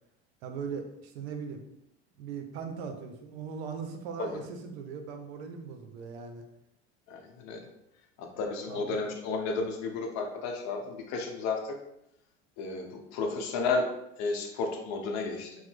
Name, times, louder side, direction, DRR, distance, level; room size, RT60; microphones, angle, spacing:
voice 1, 0.4-1.6 2.2-6.4 8.7-9.0, right 6 dB, 80° right, 5 dB, 0.6 m, -39 dB
voice 2, 7.1-7.7 8.2-11.8 12.6-13.9 14.2-15.6, left 4 dB, 55° left, 3 dB, 0.7 m, -32 dB
3.0 x 2.0 x 3.2 m, 0.81 s
supercardioid pair, 110°, 33 cm